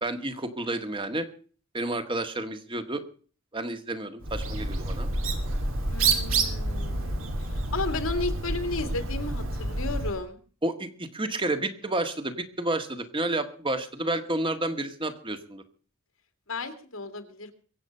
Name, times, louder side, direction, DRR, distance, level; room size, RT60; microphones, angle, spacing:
voice 1, 0.0-1.3 1.7-3.0 3.5-5.1 10.6-15.6, right 2 dB, 25° right, 9 dB, 1.6 m, -30 dB
Bird, 4.2-10.2, right 3 dB, 70° right, 2.4 m, -28 dB
voice 2, 5.9-7.2 7.5-10.4 16.5-17.5, left 3 dB, 85° left, 7 dB, 2.5 m, -33 dB
23.5 x 8.2 x 5.6 m, 0.42 s
head